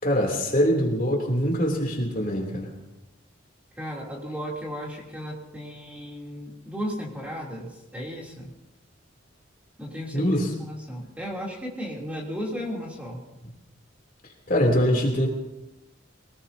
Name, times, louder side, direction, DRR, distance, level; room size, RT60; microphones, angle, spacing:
voice 1, 0.0-2.7 10.1-10.5 14.5-15.3, equal, 45° left, 0 dB, 3.1 m, -23 dB
voice 2, 3.8-8.5 9.8-13.2, equal, 5° right, -3 dB, 3.1 m, -35 dB
23.5 x 19.0 x 2.8 m, 0.97 s
head